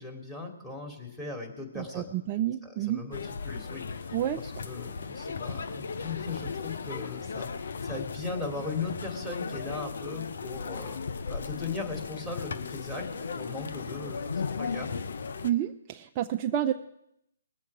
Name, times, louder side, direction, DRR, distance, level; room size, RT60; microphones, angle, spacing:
voice 1, 0.0-2.1 2.6-4.0 4.4-7.5 7.8-11.0 11.3-15.0, left 3 dB, 5° left, 0 dB, 2.6 m, -38 dB
voice 2, 1.7-3.0 4.1-4.4 15.4-16.7, right 11 dB, 30° right, 4 dB, 0.5 m, -29 dB
sound 1, 3.1-15.5, left 5 dB, 65° left, 0.8 m, -36 dB
21.0 x 7.6 x 4.8 m, 0.80 s
hypercardioid pair, 145°, 0 cm